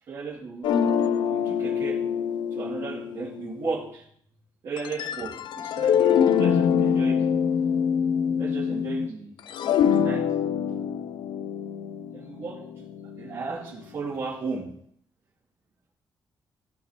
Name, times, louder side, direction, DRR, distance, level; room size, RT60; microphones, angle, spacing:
voice 1, 0.1-1.0 1.3-2.0 2.5-4.0 4.6-7.4 8.4-9.3 9.6-10.2 12.1-12.6 13.2-14.6, right 4 dB, 50° right, -8 dB, 2.7 m, -35 dB
sound 1, 0.6-3.8 4.8-9.1 9.4-13.6, left 8 dB, 75° left, 0.5 m, -25 dB
16.5 x 5.9 x 3.0 m, 0.64 s
wide cardioid pair, 180°, 8 cm